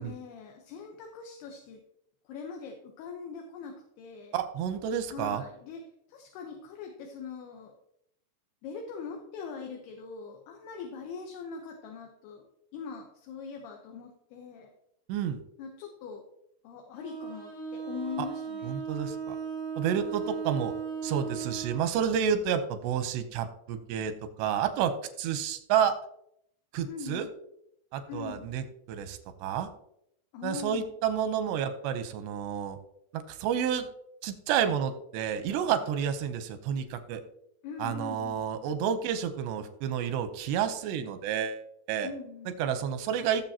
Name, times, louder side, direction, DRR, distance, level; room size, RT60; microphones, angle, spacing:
voice 1, 0.0-1.8 2.2-4.3 5.1-5.8 6.1-7.7 8.6-14.7 15.6-16.2 16.6-18.8 26.9-27.3 28.1-28.5 30.3-30.9 37.6-38.5 42.0-42.6, left 5 dB, 75° left, 2 dB, 3.0 m, -42 dB
voice 2, 4.3-5.4 15.1-15.4 18.2-18.3 18.6-19.4 19.8-20.7 21.0-24.1 24.4-24.9 25.2-26.0 26.7-27.3 27.9-29.7 30.4-32.8 33.1-33.9 34.2-37.2 37.8-41.6 41.9-42.1 42.6-43.5, right 8 dB, 90° right, 9 dB, 3.0 m, -30 dB
Bowed string instrument, 16.9-21.9, right 6 dB, 50° left, 4.3 m, -37 dB
17.0 x 7.4 x 2.9 m, 0.74 s
omnidirectional pair, 4.9 m